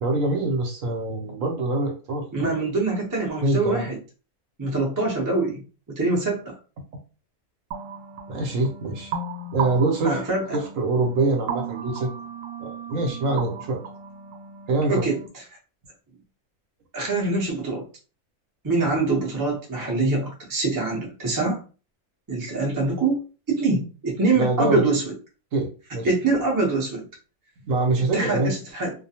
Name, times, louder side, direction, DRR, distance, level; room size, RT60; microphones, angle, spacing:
voice 1, 0.0-2.5 3.4-3.9 8.3-9.1 9.5-12.1 12.6-13.8 14.7-15.1 24.3-25.0 25.5-26.1 27.6-28.6, right 2 dB, 65° right, 1 dB, 1.0 m, -25 dB
voice 2, 2.3-4.0 4.6-5.6 5.9-6.5 10.0-10.6 14.9-15.2 16.9-17.8 18.6-21.6 22.3-25.1 26.0-27.0 28.1-28.9, right 3 dB, 25° right, -2 dB, 0.4 m, -24 dB
sound 1, 7.7-15.3, right 6 dB, 90° right, 1.1 m, -35 dB
2.4 x 2.2 x 2.7 m, 0.34 s
omnidirectional pair, 1.6 m